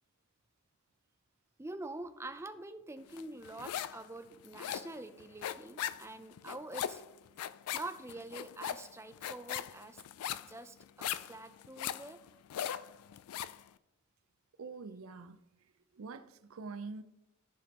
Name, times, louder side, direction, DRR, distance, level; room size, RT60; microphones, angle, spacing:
voice 1, 1.6-7.0 7.7-10.0 10.5-12.2, right 2 dB, 10° right, 0.4 m, -46 dB
sound 1, 3.2-4.1 4.3-13.6, left 10 dB, 90° left, 0.3 m, -39 dB
voice 2, 14.6-15.4 15.9-17.0, right 4 dB, 70° right, 0.5 m, -45 dB
14.0 x 5.2 x 2.9 m
head